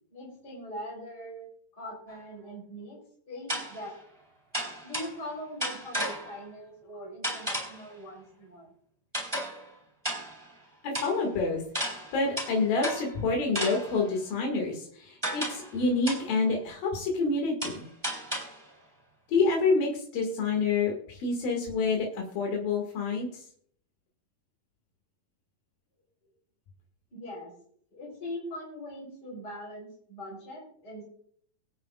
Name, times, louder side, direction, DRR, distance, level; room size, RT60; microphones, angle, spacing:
voice 1, 0.1-1.4 1.8-3.0 3.3-4.0 4.8-8.7 27.1-27.5 27.9-31.0, equal, 30° left, -6 dB, 4.1 m, -41 dB
sound 1, 2.1-2.2 3.5-3.9 4.5-5.3 5.6-6.4 7.2-7.9 9.1-9.7 10.0-10.5 10.9-11.2 11.7-13.2 13.5-14.1 15.2-15.8 16.0-16.4 17.6-18.7, equal, 5° right, 2.8 m, -34 dB
voice 2, 10.8-17.9 19.3-23.4, left 3 dB, 90° left, 0 dB, 3.8 m, -28 dB
24.0 x 8.4 x 2.4 m, 0.63 s
omnidirectional pair, 3.9 m